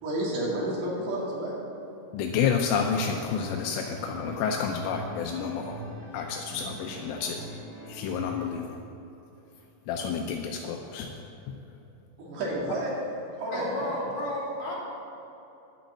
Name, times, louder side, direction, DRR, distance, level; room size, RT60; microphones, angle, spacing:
voice 1, 0.0-1.5 12.2-12.9 13.3-14.1, right 1 dB, 65° right, -4 dB, 4.4 m, -30 dB
voice 2, 2.1-5.7 6.1-7.4 7.9-8.7 9.9-11.1, left 6 dB, 80° left, 2 dB, 3.1 m, -29 dB
sound 1, 3.2-8.5, right 1 dB, 40° right, 2.6 m, -43 dB
voice 3, 13.5-14.8, left 1 dB, 40° left, -7 dB, 3.5 m, -33 dB
12.0 x 6.5 x 8.4 m, 3.0 s
omnidirectional pair, 5.7 m